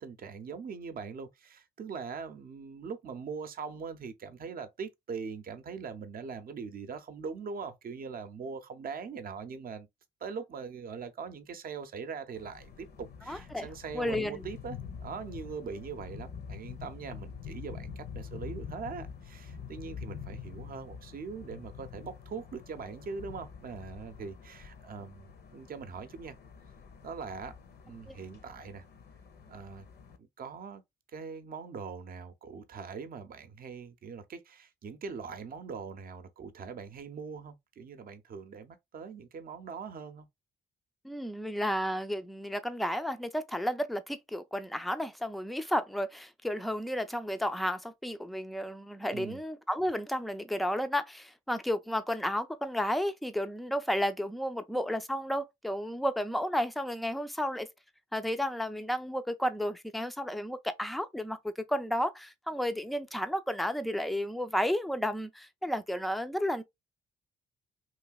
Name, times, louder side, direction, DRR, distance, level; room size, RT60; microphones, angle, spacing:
voice 1, 0.0-9.9 10.2-26.4 27.0-27.6 27.8-28.9 29.5-29.9 30.2-30.8 31.1-40.3 49.1-49.4, right 5 dB, 50° right, 0.6 m, -42 dB
sound 1, 12.3-30.2, left 7 dB, 55° left, 0.7 m, -46 dB
voice 2, 13.3-13.7 13.9-14.4 28.1-28.2 41.0-57.7 58.1-61.4 61.7-66.6, equal, ahead, 0.4 m, -32 dB
3.1 x 2.7 x 2.3 m
cardioid pair, 90°, 20 cm